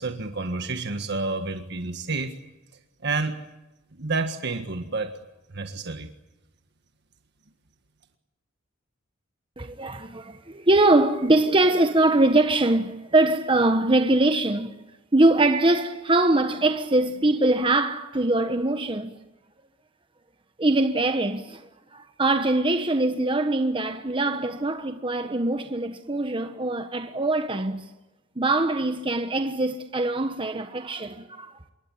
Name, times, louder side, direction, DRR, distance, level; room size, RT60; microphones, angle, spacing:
voice 1, 0.0-2.4 3.0-3.4 4.0-5.1 5.5-6.1, right 3 dB, 60° right, 1.7 m, -29 dB
voice 2, 9.6-14.8 15.1-19.2 20.6-27.8 28.4-31.5, right 2 dB, 25° right, 1.2 m, -23 dB
27.0 x 23.5 x 8.8 m
head